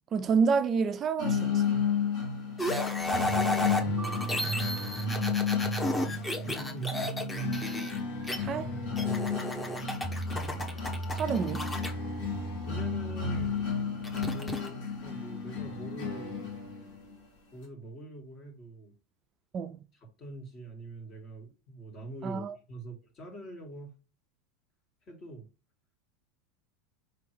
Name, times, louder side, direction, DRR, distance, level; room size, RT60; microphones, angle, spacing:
voice 1, 0.1-1.6 8.4-8.7 11.1-11.7 19.5-19.8 22.2-22.6, right 5 dB, 35° right, 0.3 m, -28 dB
sound 1, 1.2-17.2, left 7 dB, 65° left, 1.8 m, -33 dB
sound 2, 2.6-8.4 9.0-11.9 14.0-14.7, left 1 dB, 15° left, 1.0 m, -33 dB
sound 3, 3.1-13.5, right 4 dB, 15° right, 0.9 m, -37 dB
voice 2, 3.3-4.5 5.9-7.3 9.0-9.4 12.7-13.7 14.3-16.4 17.5-18.9 20.0-23.9 25.1-25.5, right 2 dB, 40° left, 1.8 m, -44 dB
4.8 x 3.4 x 3.2 m
hypercardioid pair, 85°, 0 cm